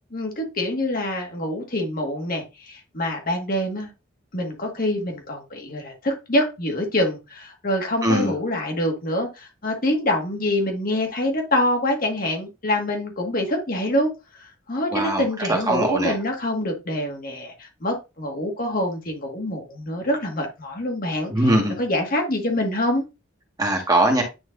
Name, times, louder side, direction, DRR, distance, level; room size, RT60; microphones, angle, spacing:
voice 1, 0.1-3.9 4.3-14.1 14.7-21.3 21.8-23.0, left 1 dB, 45° left, 1.8 m, -25 dB
voice 2, 8.0-8.3 14.9-16.1 21.3-21.8 23.6-24.2, right 1 dB, 20° right, 1.6 m, -21 dB
9.5 x 4.6 x 2.6 m
head